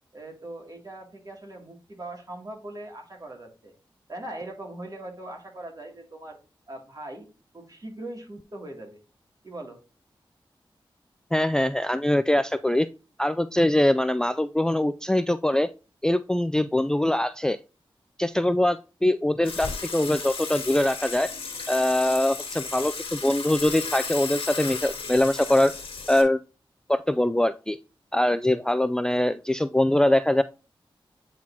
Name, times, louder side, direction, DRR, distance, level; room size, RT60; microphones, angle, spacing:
voice 1, 0.1-3.7 4.1-6.4 6.7-7.3 7.5-9.0 9.4-9.8, right 1 dB, 40° right, 1 dB, 2.5 m, -40 dB
voice 2, 11.3-12.9 13.2-15.7 16.0-17.6 18.2-21.3 21.7-25.7 26.1-26.4 26.9-27.8 28.1-30.4, left 1 dB, 5° left, 13 dB, 0.3 m, -23 dB
Water / Water tap faucet / Sink (filling or washing), 19.4-26.2, left 4 dB, 80° left, 1.8 m, -35 dB
8.9 x 4.2 x 2.8 m, 0.32 s
cardioid pair, 50°, 9 cm